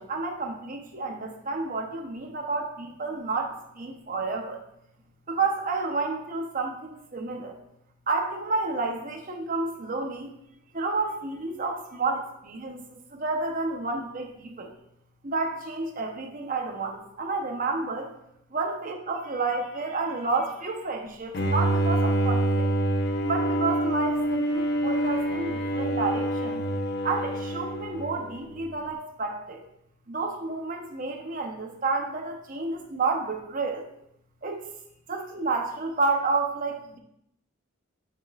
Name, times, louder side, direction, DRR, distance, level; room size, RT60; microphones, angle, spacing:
voice 1, 0.0-4.6 5.3-7.6 8.1-10.3 10.7-14.7 15.2-18.1 18.5-22.7 23.2-26.6 27.0-29.7 30.1-33.9 34.4-34.6 35.1-37.0, right 3 dB, 40° right, 2 dB, 0.9 m, -30 dB
Bowed string instrument, 21.3-28.6, right 1 dB, 55° left, 0.7 m, -26 dB
7.6 x 6.0 x 2.4 m, 0.77 s
head